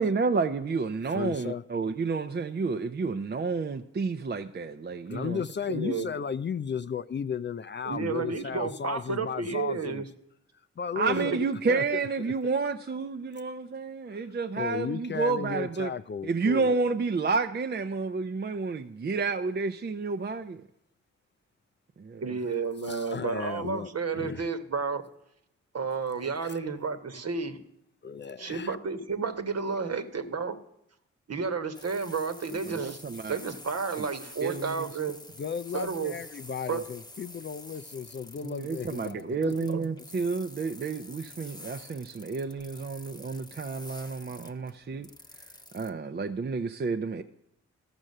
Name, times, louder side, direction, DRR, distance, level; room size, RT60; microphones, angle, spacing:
voice 1, 0.0-5.4 10.9-15.9 16.2-20.6 22.0-22.2 32.7-33.4 34.0-34.1 34.4-34.9 38.4-45.1 45.7-47.2, right 4 dB, 35° right, 0.6 m, -30 dB
voice 2, 1.1-1.6 5.1-10.0 10.8-11.4 11.7-11.8 14.6-16.8 22.9-24.5 26.4-26.6 28.0-28.8 35.4-39.7, left 6 dB, 40° left, 0.4 m, -35 dB
voice 3, 5.7-6.1 7.8-10.1 11.2-11.4 22.2-25.0 25.7-27.6 28.4-30.6 31.3-33.0 33.3-35.2 35.7-36.2 36.7-36.8 39.7-39.9, right 5 dB, 60° right, 1.2 m, -31 dB
sound 1, 31.7-45.9, left 2 dB, 15° left, 0.9 m, -48 dB
13.5 x 6.2 x 6.5 m
cardioid pair, 55°, 29 cm